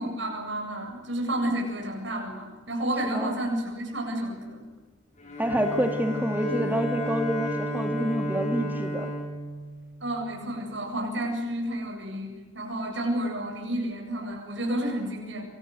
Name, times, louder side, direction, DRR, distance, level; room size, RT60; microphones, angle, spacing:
voice 1, 0.0-4.7 10.0-15.4, right 1 dB, 70° right, 1 dB, 8.0 m, -31 dB
Bowed string instrument, 5.2-10.4, right 1 dB, 40° left, 7.0 m, -32 dB
voice 2, 5.4-9.1, equal, 10° right, 5 dB, 2.6 m, -27 dB
29.0 x 24.5 x 7.9 m, 1.2 s
head